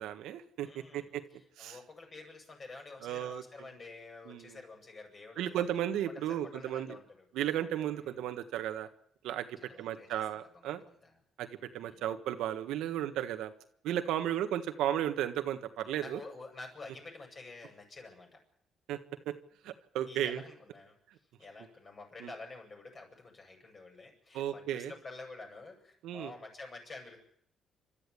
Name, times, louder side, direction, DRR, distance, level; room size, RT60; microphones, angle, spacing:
voice 1, 0.0-1.2 1.6-1.8 3.0-3.4 4.3-4.6 5.4-7.0 7.3-8.9 9.2-10.8 11.4-13.5 13.8-16.2 18.9-19.0 19.2-19.3 19.6-20.4 22.2-22.3 24.3-24.9 26.0-26.3, right 11 dB, 90° right, 8 dB, 1.5 m, -34 dB
voice 2, 0.6-7.3 7.9-8.2 9.6-11.2 11.8-12.1 14.2-14.4 16.0-18.4 20.1-21.0 21.4-27.2, left 3 dB, 40° left, 2 dB, 7.9 m, -49 dB
29.5 x 13.0 x 8.4 m, 0.70 s
cardioid pair, 90°, 0 cm